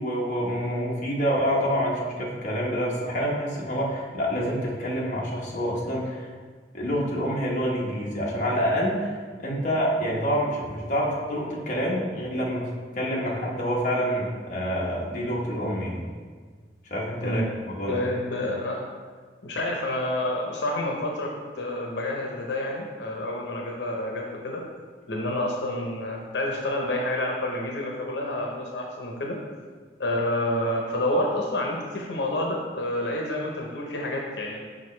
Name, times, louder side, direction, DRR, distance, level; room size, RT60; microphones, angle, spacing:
voice 1, 0.0-6.3 6.7-12.7 12.9-16.1 16.9-18.0, equal, 45° left, -4 dB, 1.1 m, -27 dB
voice 2, 17.9-18.8 19.4-24.6 25.1-29.4 30.0-34.6, left 1 dB, 85° left, 0 dB, 0.8 m, -29 dB
6.3 x 5.1 x 3.2 m, 1.5 s
head